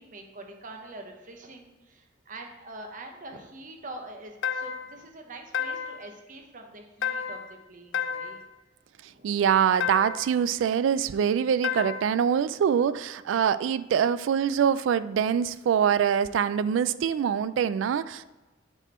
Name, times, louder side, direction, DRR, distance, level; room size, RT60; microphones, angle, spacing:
voice 1, 0.0-8.4 9.0-9.4, right 2 dB, 45° right, 3 dB, 1.0 m, -44 dB
sound 1, 4.4-5.0 5.5-6.1 7.0-7.6 7.9-8.5 9.8-10.3 11.6-12.2, left 7 dB, 85° left, 0.4 m, -31 dB
voice 2, 9.2-18.2, right 8 dB, 80° right, 16 dB, 0.3 m, -24 dB
7.9 x 4.3 x 4.3 m, 1.1 s
head